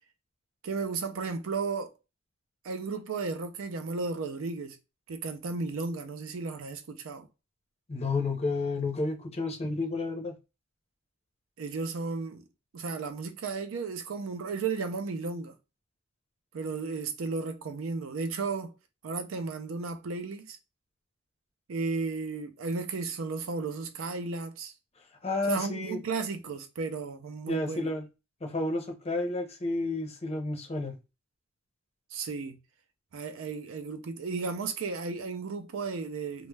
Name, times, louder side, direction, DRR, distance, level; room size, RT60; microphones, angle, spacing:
voice 1, 0.6-1.9 2.6-4.8 5.1-7.3 11.6-12.4 12.7-15.6 16.5-18.7 19.0-20.6 21.7-24.7 25.5-27.9 32.1-32.6 33.1-36.5, right 4 dB, 70° right, 0.5 m, -34 dB
voice 2, 7.9-10.4 25.2-26.0 27.5-28.1 28.4-30.9, left 2 dB, 30° left, 0.6 m, -31 dB
2.2 x 2.0 x 3.2 m
head